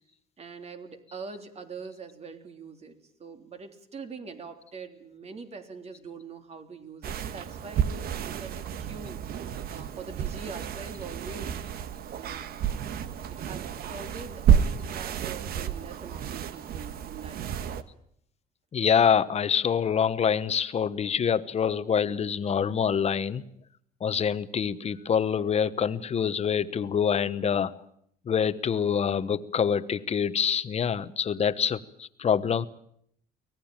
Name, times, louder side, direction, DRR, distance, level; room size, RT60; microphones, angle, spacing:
voice 1, 0.4-11.6 12.2-12.4 13.3-17.7, right 4 dB, 40° right, 7 dB, 3.4 m, -43 dB
sound 1, 7.0-17.8, right 8 dB, 65° right, 1.4 m, -30 dB
voice 2, 18.7-23.4 24.0-27.7 28.3-32.7, left 7 dB, 40° left, 13 dB, 1.2 m, -26 dB
24.5 x 18.5 x 8.9 m, 0.70 s
cardioid pair, 110°, 17 cm